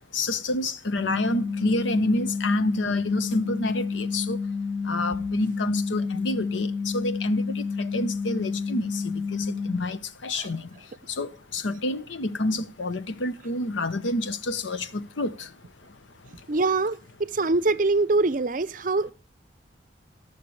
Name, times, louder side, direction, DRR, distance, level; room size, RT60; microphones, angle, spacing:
voice 1, 0.1-4.4 4.8-10.7 11.1-15.5, left 2 dB, 80° left, 0.9 m, -28 dB
sound 1, 1.0-9.8, left 5 dB, 25° left, 0.5 m, -30 dB
voice 2, 16.5-19.1, right 3 dB, 45° right, 0.6 m, -24 dB
18.5 x 6.7 x 3.2 m
head